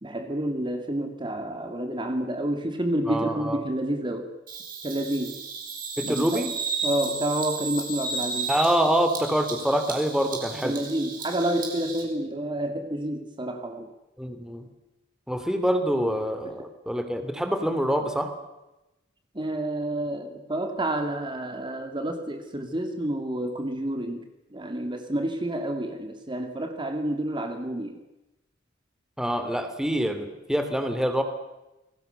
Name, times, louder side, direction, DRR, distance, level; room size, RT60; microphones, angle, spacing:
voice 1, 0.0-4.3 4.8-5.4 6.0-6.4 6.8-8.5 10.6-13.9 19.3-24.3 24.5-28.0, right 1 dB, 25° right, 5 dB, 2.5 m, -29 dB
voice 2, 3.1-3.6 6.0-6.5 8.5-10.8 14.2-14.7 15.3-18.3 29.2-31.2, equal, 5° right, 7 dB, 2.8 m, -25 dB
Bird vocalization bird call bird song, 4.5-12.0, right 4 dB, 45° right, 6.6 m, -33 dB
28.5 x 21.0 x 6.8 m, 0.98 s
head